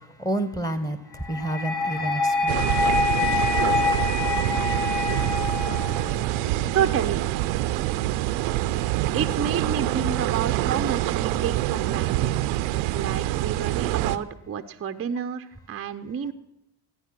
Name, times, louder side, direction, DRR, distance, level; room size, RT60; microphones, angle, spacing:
voice 1, 0.2-1.0 1.3-2.9, right 1 dB, 5° left, 12 dB, 1.4 m, -29 dB
sound 1, 1.2-6.3, left 4 dB, 90° left, 1.7 m, -26 dB
sound 2, 2.5-14.2, right 15 dB, 70° right, 0.7 m, -25 dB
voice 2, 6.7-7.2 9.1-12.3 12.9-16.3, right 8 dB, 30° right, 8 dB, 0.7 m, -29 dB
14.5 x 8.9 x 6.0 m, 0.87 s
hypercardioid pair, 60°, 50 cm